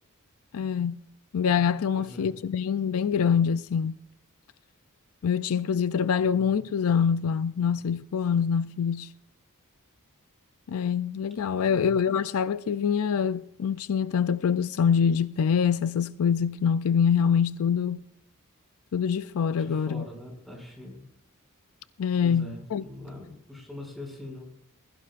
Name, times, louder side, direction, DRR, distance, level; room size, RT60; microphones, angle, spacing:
voice 1, 0.5-1.0 1.3-4.0 5.2-9.1 10.7-18.0 18.9-20.0 22.0-22.8, left 7 dB, 70° left, 0.4 m, -25 dB
voice 2, 1.9-2.3 11.5-11.9 19.5-21.0 22.2-24.5, left 1 dB, ahead, 6.2 m, -43 dB
21.0 x 16.5 x 2.5 m
head